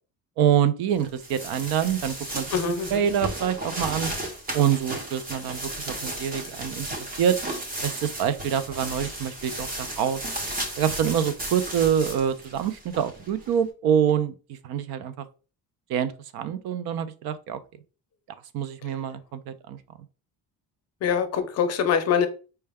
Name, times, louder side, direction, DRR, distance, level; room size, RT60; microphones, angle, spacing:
voice 1, 0.4-2.5 2.9-4.1 4.5-6.9 7.2-7.4 7.8-10.2 10.8-15.3 15.9-17.6 18.5-19.8, right 9 dB, 75° right, 0.5 m, -26 dB
sound 1, 1.0-13.5, right 1 dB, 25° right, 0.6 m, -34 dB
voice 2, 2.5-3.1 18.8-18.9 21.0-22.3, left 7 dB, 45° left, 0.5 m, -24 dB
4.5 x 2.2 x 3.4 m
cardioid pair, 180°, 37 cm